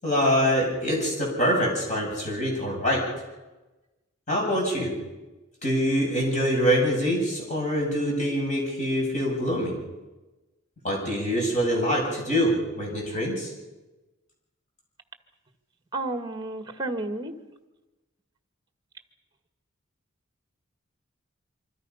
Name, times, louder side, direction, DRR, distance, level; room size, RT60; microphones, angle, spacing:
voice 1, 0.0-3.0 4.3-4.9 5.6-9.7 10.8-13.5, equal, 35° left, -1 dB, 7.4 m, -25 dB
voice 2, 15.9-17.3, right 2 dB, 20° right, 7 dB, 1.7 m, -31 dB
26.5 x 25.0 x 5.7 m, 1.1 s
head